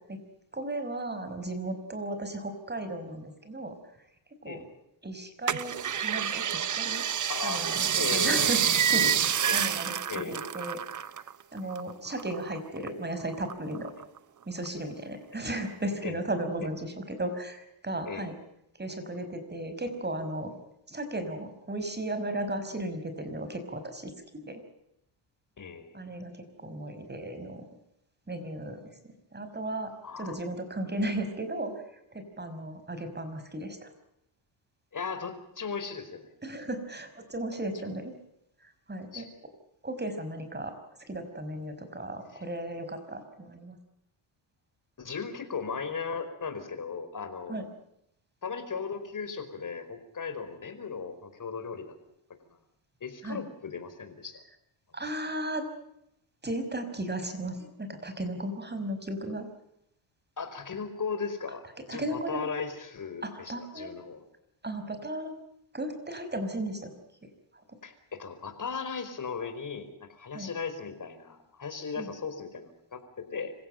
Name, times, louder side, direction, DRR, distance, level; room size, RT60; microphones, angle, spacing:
voice 1, 0.5-3.8 4.4-4.6 5.0-5.8 6.0-7.0 7.4-9.1 9.5-11.2 11.5-13.9 14.5-18.3 18.8-20.5 20.9-24.1 24.4-24.6 25.9-27.6 28.3-31.8 32.1-33.9 36.4-38.1 38.6-39.3 39.8-40.7 41.1-43.8 47.5-47.7 53.2-53.4 54.9-55.7 56.4-59.5 61.9-62.5 63.2-63.9 64.6-65.4 65.7-66.9 70.3-70.5 72.0-72.1, right 1 dB, 20° right, 9 dB, 5.4 m, -35 dB
sound 1, 5.5-11.3 11.6-12.9 13.3-14.2 14.7-14.8, right 8 dB, 35° right, 0.9 m, -28 dB
voice 2, 7.3-8.5 9.5-9.7 10.1-10.3 11.6-11.7 16.0-16.2 18.1-18.3 25.6-26.0 30.0-30.4 34.9-36.3 39.1-39.3 42.3-42.4 45.0-47.7 48.4-51.8 53.0-54.4 60.4-64.2 67.8-73.5, left 5 dB, 40° left, 8 dB, 4.9 m, -37 dB
26.5 x 16.0 x 9.1 m, 0.80 s
cardioid pair, 95°, 50 cm